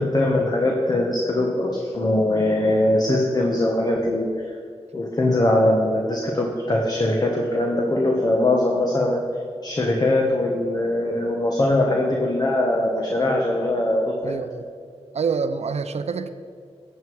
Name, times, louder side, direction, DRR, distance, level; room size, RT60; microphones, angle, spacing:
voice 1, 0.0-4.3 4.9-9.2 9.6-14.3, left 1 dB, 35° left, -1 dB, 1.5 m, -21 dB
voice 2, 14.2-14.7 15.1-16.3, right 5 dB, 75° right, 10 dB, 0.7 m, -26 dB
13.0 x 8.1 x 4.7 m, 2.3 s
wide cardioid pair, 90°, 11 cm